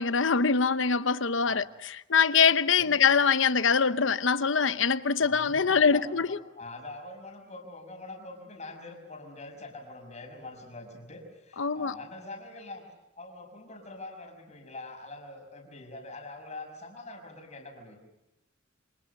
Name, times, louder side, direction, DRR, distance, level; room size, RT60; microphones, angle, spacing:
voice 1, 0.0-1.6 2.1-6.4 11.6-11.9, left 6 dB, 75° left, 0.9 m, -23 dB
voice 2, 5.2-12.8 13.2-18.0, left 2 dB, 35° left, 5.8 m, -44 dB
28.5 x 26.0 x 6.6 m
head